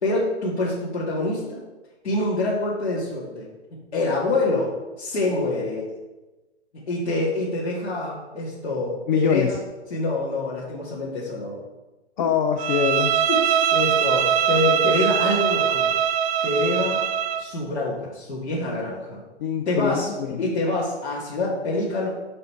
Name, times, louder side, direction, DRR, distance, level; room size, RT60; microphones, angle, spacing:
voice 1, 0.0-1.6 2.0-3.5 3.9-4.7 5.0-5.9 6.9-9.5 9.9-11.6 13.3-15.9 16.4-17.0 17.4-19.2 19.7-20.1 20.4-22.1, left 2 dB, 90° left, -7 dB, 2.2 m, -26 dB
voice 2, 9.1-9.6 12.2-13.2 19.4-20.4, left 7 dB, 45° left, 5 dB, 0.6 m, -24 dB
Bowed string instrument, 12.6-17.5, right 9 dB, 65° right, 0.7 m, -22 dB
6.7 x 5.4 x 4.5 m, 1.1 s
hypercardioid pair, 150°, 33 cm